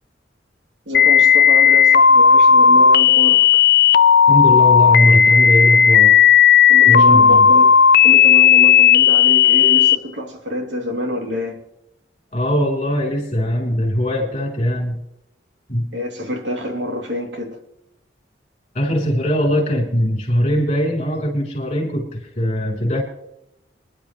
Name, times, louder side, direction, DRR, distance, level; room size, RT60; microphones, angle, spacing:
sound 1, 0.9-10.0, left 7 dB, 55° left, 0.5 m, -12 dB
voice 1, 0.9-3.6 6.7-7.7 8.0-11.6 15.9-17.6, equal, 75° right, 2 dB, 2.7 m, -26 dB
voice 2, 4.3-6.2 6.8-7.4 12.3-15.0 15.7-15.9 18.7-23.0, equal, 35° left, 0 dB, 3.7 m, -20 dB
25.0 x 11.0 x 3.1 m, 0.82 s
head